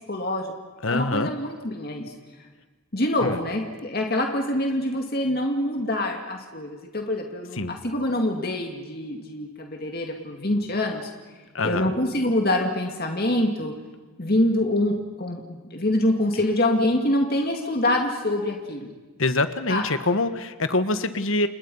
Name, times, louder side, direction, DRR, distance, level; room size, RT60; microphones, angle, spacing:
voice 1, 0.1-0.5 0.9-2.1 2.9-11.1 11.6-13.7 14.2-18.9 19.7-19.9, left 1 dB, 45° left, 2 dB, 2.3 m, -25 dB
voice 2, 0.8-1.3 3.2-3.4 7.6-7.8 11.5-11.9 19.2-21.5, left 2 dB, 65° left, 11 dB, 1.4 m, -24 dB
29.5 x 28.0 x 5.6 m, 1.3 s
head